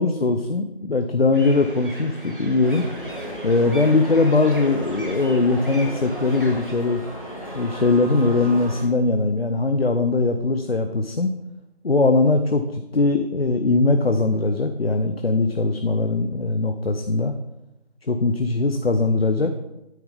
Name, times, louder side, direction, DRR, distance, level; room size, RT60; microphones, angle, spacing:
voice 1, 0.0-2.8 3.4-7.0 7.5-11.3 11.8-17.3 18.1-19.5, left 3 dB, 65° left, 7 dB, 0.6 m, -20 dB
sound 1, 1.3-6.7, right 1 dB, 50° right, 1.4 m, -39 dB
sound 2, 2.6-8.8, equal, 35° left, 1.2 m, -35 dB
9.2 x 3.9 x 5.1 m, 0.93 s
figure-of-eight pair, 180°, 33 cm